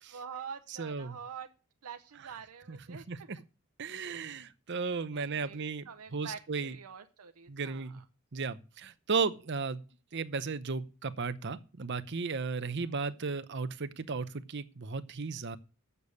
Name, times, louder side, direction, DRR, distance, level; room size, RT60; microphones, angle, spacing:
voice 1, 0.1-1.5 1.8-3.0 5.1-5.6 5.9-8.0 12.6-13.0, right 6 dB, 85° right, 0.7 m, -46 dB
voice 2, 0.8-1.2 2.7-3.4 3.8-6.8 7.5-8.0 8.3-9.8 10.1-15.6, right 4 dB, 50° right, 0.7 m, -35 dB
8.4 x 6.8 x 8.4 m
head